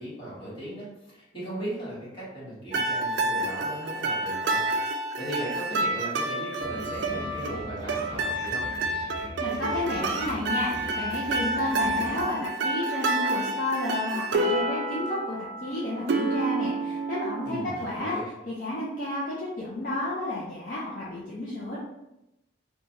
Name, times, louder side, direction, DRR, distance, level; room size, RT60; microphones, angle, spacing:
voice 1, 0.0-4.6 4.9-8.7 17.4-18.2, equal, 25° left, -10 dB, 1.4 m, -37 dB
sound 1, 2.7-17.8, right 2 dB, 60° right, 0.3 m, -29 dB
sound 2, 6.6-12.3, equal, 30° right, 0.9 m, -42 dB
voice 2, 9.1-18.2 18.5-21.8, left 1 dB, 45° left, -7 dB, 0.5 m, -32 dB
3.2 x 2.3 x 2.6 m, 0.89 s
head